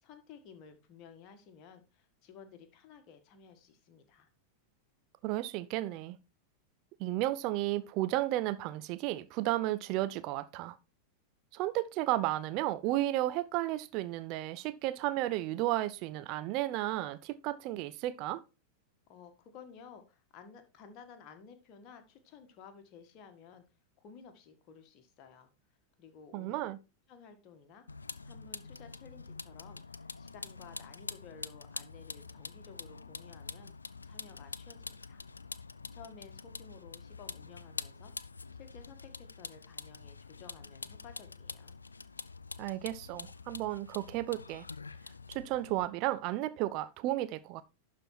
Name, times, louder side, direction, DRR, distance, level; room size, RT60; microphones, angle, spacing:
voice 1, 0.0-4.3 19.1-23.6 24.0-25.5 26.0-26.7 27.1-27.8 28.2-33.7 34.0-35.2 35.9-38.1 38.5-41.8, left 6 dB, 40° left, 1.7 m, -54 dB
voice 2, 5.2-6.2 7.0-10.8 11.5-18.4 26.3-26.8 42.6-44.7 45.3-47.6, right 15 dB, 40° right, 0.5 m, -33 dB
Vehicle, 27.9-45.9, left 4 dB, 75° left, 0.4 m, -46 dB
11.5 x 4.3 x 4.5 m
figure-of-eight pair, 90°, 0 cm